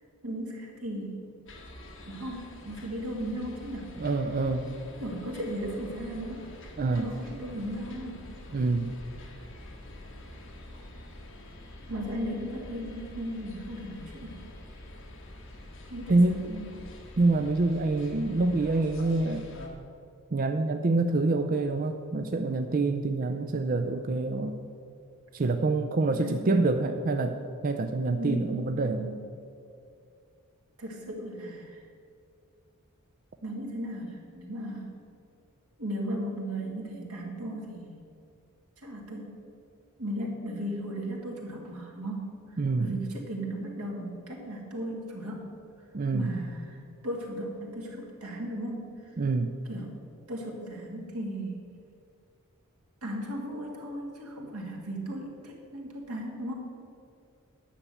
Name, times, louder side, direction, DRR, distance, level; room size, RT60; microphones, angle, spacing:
voice 1, 0.2-1.2 2.1-3.9 4.7-6.5 6.9-8.2 11.9-14.4 15.9-16.7 26.1-26.7 28.2-29.2 30.8-31.8 33.4-34.9 35.8-37.9 38.8-39.3 40.0-42.3 42.8-45.5 46.1-48.9 49.7-49.9 50.3-51.6 53.0-56.5, equal, 85° right, 0 dB, 2.3 m, -36 dB
sound 1, 1.5-19.7, left 1 dB, 60° left, 1.7 m, -46 dB
voice 2, 4.0-4.7 6.8-7.1 8.5-8.9 16.1-16.4 17.2-19.4 20.3-24.6 25.3-27.4 27.6-29.1 42.6-43.0 45.9-46.3 49.2-49.6, right 3 dB, 40° right, 6 dB, 0.4 m, -26 dB
9.9 x 6.0 x 8.4 m, 2.4 s
head